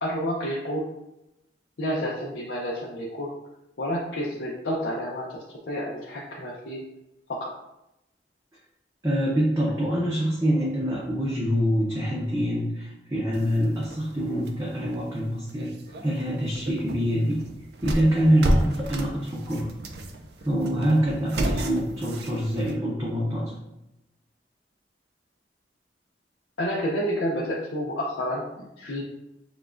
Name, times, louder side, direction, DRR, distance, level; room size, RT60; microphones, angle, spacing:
voice 1, 0.0-0.9 1.8-3.3 3.8-6.8 7.3-7.5 26.6-29.0, equal, 75° left, -4 dB, 0.7 m, -30 dB
voice 2, 9.0-15.7 16.0-17.5 17.8-19.7 20.4-23.5, equal, 20° right, -6 dB, 0.7 m, -25 dB
sound 1, 13.3-22.8, right 1 dB, 65° right, 0.5 m, -32 dB
6.9 x 2.3 x 2.5 m, 0.89 s
head